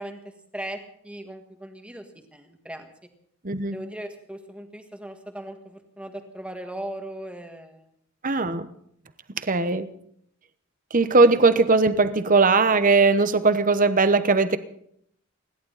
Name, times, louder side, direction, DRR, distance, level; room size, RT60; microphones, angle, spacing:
voice 1, 0.0-2.9 3.7-7.9, right 1 dB, 5° right, 5 dB, 1.7 m, -38 dB
voice 2, 8.2-8.7 9.4-9.9 10.9-14.6, right 3 dB, 35° right, 11 dB, 1.0 m, -19 dB
29.0 x 11.5 x 4.1 m, 0.69 s
head